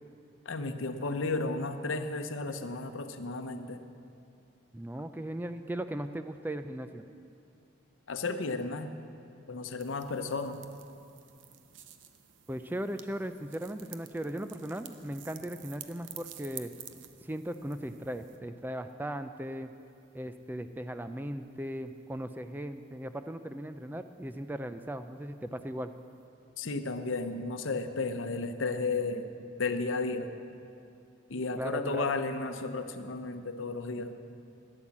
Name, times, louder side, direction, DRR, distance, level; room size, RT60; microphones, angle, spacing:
voice 1, 0.4-3.8 8.1-8.9 9.5-10.6 26.6-29.3 29.6-30.3 31.3-34.1, left 3 dB, 85° left, 8 dB, 0.8 m, -33 dB
voice 2, 4.7-7.0 12.5-16.7 17.2-19.7 20.1-25.9 31.6-32.0, right 1 dB, 10° right, 9 dB, 0.3 m, -37 dB
sound 1, 9.8-18.4, right 10 dB, 70° right, 0.7 m, -51 dB
13.0 x 9.9 x 7.2 m, 2.6 s
head